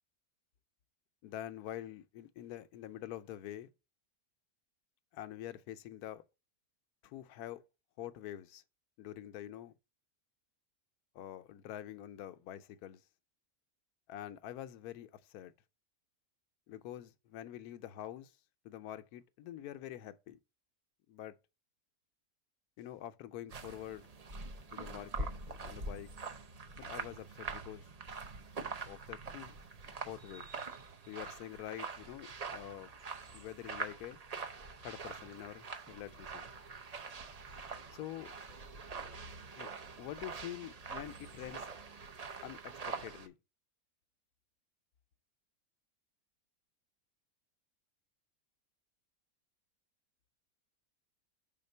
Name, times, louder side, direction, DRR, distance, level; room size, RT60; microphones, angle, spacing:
voice 1, 1.2-3.7 5.1-6.2 7.0-7.6 8.0-8.6 9.0-9.7 11.1-13.0 14.1-15.5 16.7-18.4 18.6-20.4 21.1-21.4 22.8-24.1 24.7-26.1 26.8-27.9 28.8-29.5 30.1-30.5 31.1-32.9 33.3-34.2 34.8-36.4 37.9-38.3 39.6-39.7 40.0-41.7 42.4-43.3, left 12 dB, 80° left, 1.1 m, -46 dB
sound 1, 23.5-43.3, right 4 dB, 45° right, 0.5 m, -44 dB
5.7 x 3.8 x 5.3 m
omnidirectional pair, 1.6 m